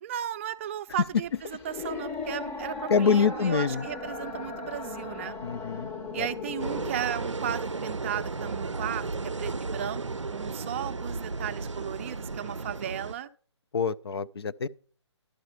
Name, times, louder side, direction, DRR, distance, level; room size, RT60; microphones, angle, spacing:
voice 1, 0.0-5.4 6.1-9.1 9.4-10.0 10.3-13.3, right 10 dB, 25° right, 0.5 m, -35 dB
sound 1, 0.9-6.9, left 4 dB, 15° left, 0.8 m, -37 dB
voice 2, 2.9-3.8 5.4-5.9 6.2-6.3 13.7-14.7, left 6 dB, 60° left, 0.5 m, -25 dB
sound 2, 6.6-13.1, right 3 dB, 90° right, 0.5 m, -34 dB
11.5 x 4.8 x 7.8 m
figure-of-eight pair, 135°, 15 cm